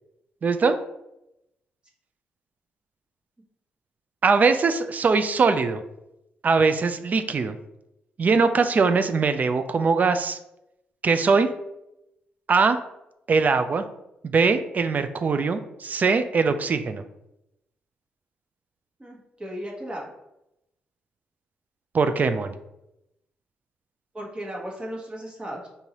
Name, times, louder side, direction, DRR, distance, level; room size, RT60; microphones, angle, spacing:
voice 1, 0.4-0.8 4.2-5.8 6.4-7.6 8.2-10.4 11.0-11.5 12.5-12.8 13.3-13.8 14.2-17.0 21.9-22.5, right 4 dB, 45° right, 9 dB, 0.3 m, -21 dB
voice 2, 19.0-20.1 24.1-25.7, equal, 25° right, -2 dB, 1.2 m, -35 dB
3.8 x 2.6 x 2.9 m, 0.87 s
supercardioid pair, 55°, 4 cm